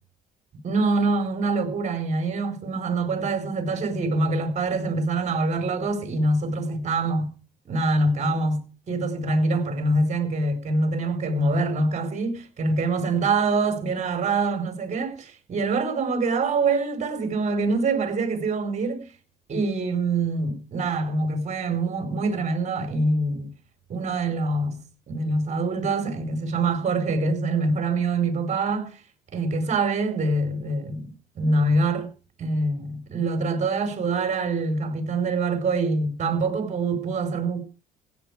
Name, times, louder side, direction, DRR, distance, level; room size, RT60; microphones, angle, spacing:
voice 1, 0.6-7.3 7.7-19.0 19.5-23.5 23.9-24.8 25.1-29.0 29.3-32.1 32.4-37.6, right 3 dB, 45° right, 4.7 m, -25 dB
16.5 x 9.9 x 5.0 m
cardioid pair, 110°, 17 cm